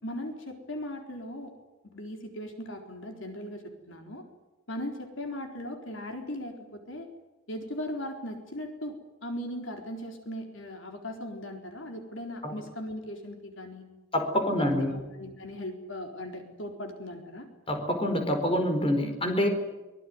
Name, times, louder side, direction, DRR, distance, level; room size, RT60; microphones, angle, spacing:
voice 1, 0.0-1.5 1.9-4.2 4.7-7.1 7.5-13.8 14.5-17.5, left 1 dB, 60° left, 4 dB, 4.2 m, -38 dB
voice 2, 14.1-14.9 17.7-19.5, left 1 dB, 25° left, 5 dB, 4.6 m, -26 dB
24.5 x 22.0 x 9.7 m, 1.1 s
head